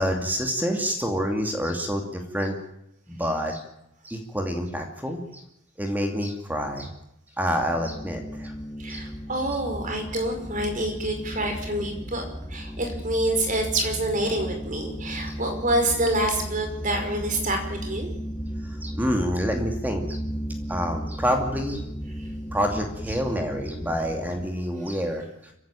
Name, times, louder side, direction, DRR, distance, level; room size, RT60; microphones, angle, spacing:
voice 1, 0.0-2.6 3.1-3.6 4.0-5.4 5.8-6.9 7.4-8.5 8.9-9.0 18.6-20.2 20.7-21.8 22.5-25.5, equal, 10° right, 3 dB, 2.5 m, -27 dB
sound 1, 7.6-24.5, equal, 15° left, 1.7 m, -35 dB
voice 2, 8.8-12.2 12.5-18.1, right 1 dB, 35° right, 4 dB, 5.3 m, -27 dB
25.5 x 15.5 x 9.1 m, 0.83 s
head